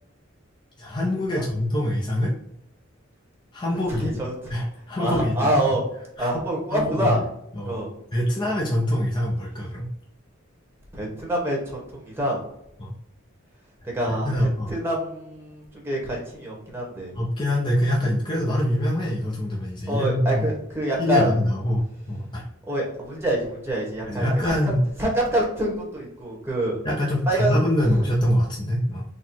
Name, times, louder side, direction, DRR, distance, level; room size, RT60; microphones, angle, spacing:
voice 1, 0.8-2.3 3.5-4.2 4.5-5.5 6.2-6.3 6.7-7.1 7.6-7.8 8.1-9.9 12.8-12.9 14.2-14.7 17.2-20.4 21.0-22.4 24.1-24.8 26.8-29.1, left 1 dB, 25° left, -4 dB, 0.6 m, -24 dB
voice 2, 3.7-4.5 5.0-5.8 6.2-7.2 7.6-7.9 8.4-8.6 10.9-12.4 13.8-17.2 19.9-21.3 22.7-24.5 25.0-26.8 27.3-28.0, right 1 dB, 10° right, -3 dB, 1.2 m, -26 dB
4.1 x 2.2 x 4.3 m, 0.78 s
head